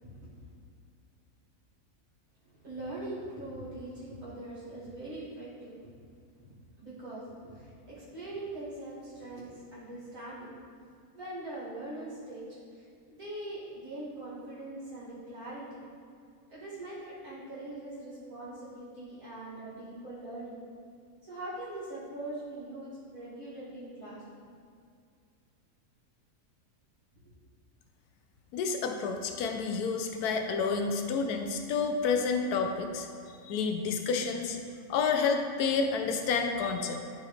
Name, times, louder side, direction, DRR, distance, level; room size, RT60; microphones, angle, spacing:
voice 1, 2.4-6.0 6.8-10.5 11.1-12.4 12.7-15.8 16.5-20.6 21.2-24.4, right 1 dB, 60° right, -10 dB, 2.5 m, -42 dB
voice 2, 28.5-33.1 33.4-34.6 34.9-37.0, left 5 dB, 85° left, 4 dB, 1.2 m, -29 dB
12.5 x 4.2 x 3.2 m, 2.3 s
omnidirectional pair, 1.6 m